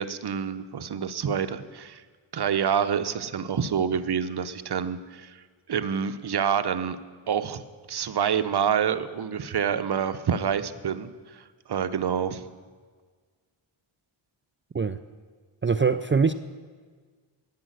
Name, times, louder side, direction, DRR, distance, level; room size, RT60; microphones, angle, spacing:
voice 1, 0.0-2.0 2.3-7.0 7.3-12.4, right 7 dB, 50° right, 11 dB, 0.8 m, -27 dB
voice 2, 15.6-16.3, right 5 dB, 25° right, 11 dB, 0.3 m, -22 dB
10.5 x 9.0 x 7.9 m, 1.5 s
cardioid pair, 65°, 50 cm